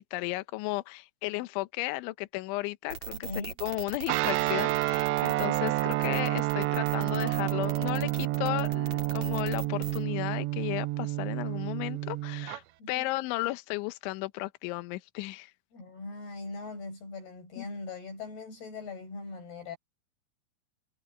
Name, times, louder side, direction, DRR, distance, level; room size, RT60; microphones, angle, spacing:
voice 1, 0.0-15.5 17.6-17.7, left 20 dB, 75° left, 3.1 m, -34 dB
sound 1, 2.9-10.0, right 7 dB, 40° right, 3.0 m, -40 dB
voice 2, 3.1-3.5 12.8-13.1 15.7-19.8, left 3 dB, 50° left, 8.4 m, -40 dB
Guitar, 4.1-12.6, right 18 dB, 85° right, 2.5 m, -29 dB
omnidirectional pair, 5.9 m